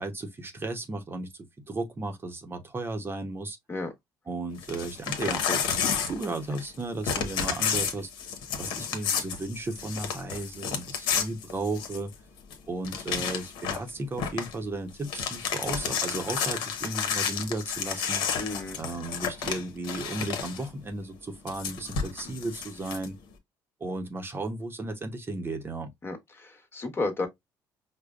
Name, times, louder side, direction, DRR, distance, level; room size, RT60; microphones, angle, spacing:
voice 1, 0.0-1.3 1.7-3.6 4.3-8.1 8.6-12.1 12.7-18.2 18.7-23.2 23.8-25.9, right 2 dB, 30° right, 0.8 m, -34 dB
Crumpling crinkling / Tearing, 4.6-6.8 7.0-12.1 12.5-12.6 12.8-13.9 14.2-14.5 14.9-20.7 21.5-23.1, left 7 dB, 80° left, 0.9 m, -31 dB
voice 2, 18.4-18.8 26.0-27.3, left 2 dB, 30° left, 1.2 m, -32 dB
4.9 x 2.2 x 2.4 m
cardioid pair, 95°, 8 cm